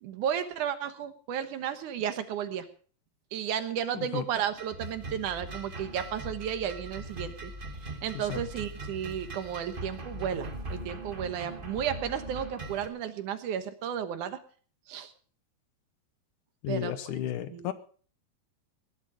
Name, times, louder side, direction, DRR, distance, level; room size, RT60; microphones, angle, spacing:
voice 1, 0.0-2.7 3.3-7.5 7.8-14.4 14.9-15.1 16.7-17.1 17.5-17.7, right 9 dB, 70° right, 10 dB, 2.6 m, -33 dB
sound 1, 4.1-12.9, right 1 dB, 40° right, 0.7 m, -40 dB
voice 2, 16.6-17.7, left 11 dB, 70° left, 13 dB, 2.3 m, -33 dB
19.0 x 11.5 x 5.1 m, 0.43 s
omnidirectional pair, 3.8 m